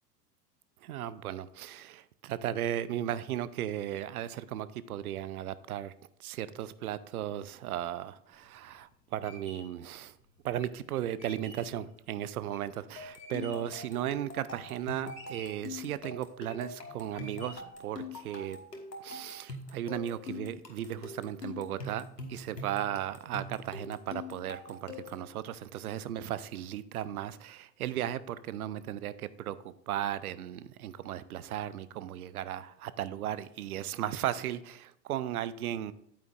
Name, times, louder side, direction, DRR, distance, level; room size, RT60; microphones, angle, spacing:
voice 1, 0.8-5.9 6.2-10.2 10.4-18.6 19.0-35.9, right 11 dB, 65° right, 16 dB, 0.6 m, -36 dB
sound 1, 8.3-13.8 14.2-14.8 15.1-15.7 16.2-16.7 17.1-17.8, left 1 dB, 15° left, 2.9 m, -51 dB
sound 2, 13.0-25.3, left 3 dB, 85° left, 1.4 m, -44 dB
9.0 x 8.7 x 2.5 m, 0.75 s
figure-of-eight pair, 85°, 48 cm